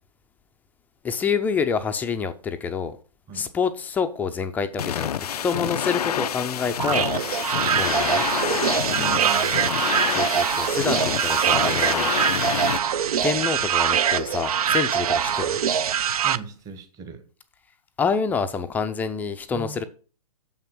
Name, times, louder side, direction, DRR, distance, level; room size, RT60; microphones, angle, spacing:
voice 1, 1.0-3.0 3.3-7.1 7.7-8.2 10.1-12.1 13.2-15.6 18.0-19.8, left 5 dB, 10° left, 0.4 m, -27 dB
sound 1, 4.8-12.8, left 9 dB, 75° left, 0.4 m, -28 dB
sound 2, 6.8-16.4, right 8 dB, 65° right, 0.6 m, -23 dB
voice 2, 8.9-9.7 16.2-17.2 19.5-19.8, right 5 dB, 15° right, 1.1 m, -38 dB
7.0 x 5.7 x 6.0 m
hypercardioid pair, 135°, 20 cm